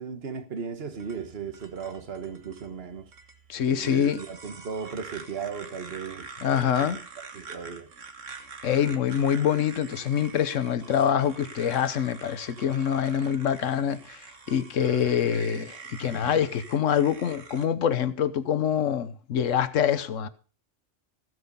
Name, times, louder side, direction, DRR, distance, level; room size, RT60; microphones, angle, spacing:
voice 1, 0.0-3.1 3.7-7.9 8.8-9.0, right 6 dB, 55° right, 1.5 m, -37 dB
sound 1, 0.9-17.7, right 5 dB, 75° right, 1.8 m, -45 dB
voice 2, 3.5-4.2 6.4-7.0 8.6-14.2 14.5-20.3, left 8 dB, 80° left, 1.3 m, -25 dB
15.0 x 8.1 x 5.4 m
omnidirectional pair, 1.3 m